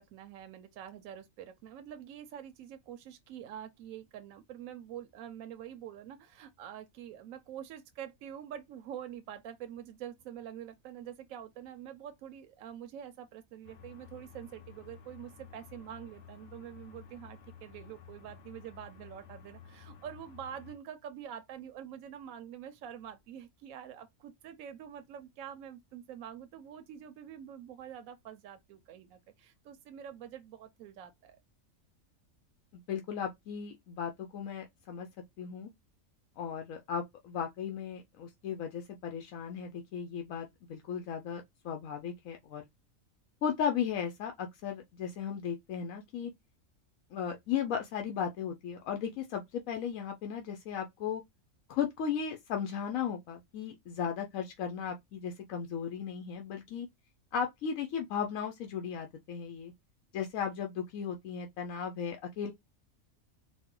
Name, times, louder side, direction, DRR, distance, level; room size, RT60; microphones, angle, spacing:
voice 1, 0.0-31.4, right 9 dB, 85° right, 1.0 m, -46 dB
sound 1, 13.6-20.7, left 7 dB, 65° left, 1.2 m, -53 dB
voice 2, 32.9-35.1 35.4-35.7 36.4-42.6 43.4-46.3 47.1-51.2 51.7-56.9 57.3-59.7 60.1-62.5, left 7 dB, 85° left, 1.0 m, -36 dB
4.1 x 2.2 x 3.7 m
omnidirectional pair, 1.4 m